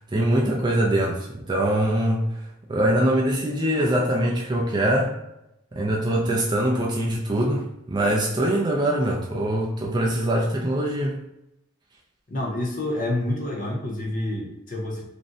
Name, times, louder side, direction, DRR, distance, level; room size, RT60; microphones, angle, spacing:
voice 1, 0.0-2.2 2.7-5.1 5.7-11.1, right 1 dB, 20° right, -2 dB, 0.3 m, -23 dB
voice 2, 12.3-15.1, left 1 dB, 40° left, -1 dB, 0.6 m, -28 dB
2.5 x 2.1 x 3.6 m, 0.86 s
head